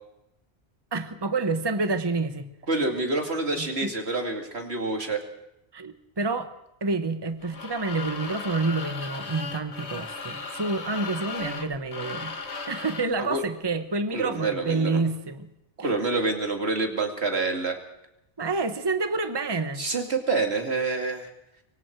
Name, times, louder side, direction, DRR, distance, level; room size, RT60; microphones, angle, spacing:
voice 1, 0.9-2.5 3.6-3.9 5.7-6.5 6.8-12.3 12.7-15.5 15.8-15.9 18.4-19.8, right 3 dB, 25° right, 9 dB, 1.2 m, -28 dB
voice 2, 2.7-5.2 13.2-13.4 14.1-15.0 15.8-17.8 19.8-21.3, right 3 dB, 75° right, 4 dB, 2.9 m, -27 dB
sound 1, 7.4-13.2, left 4 dB, 85° left, 1.8 m, -36 dB
25.5 x 23.0 x 4.7 m, 0.85 s
omnidirectional pair, 1.1 m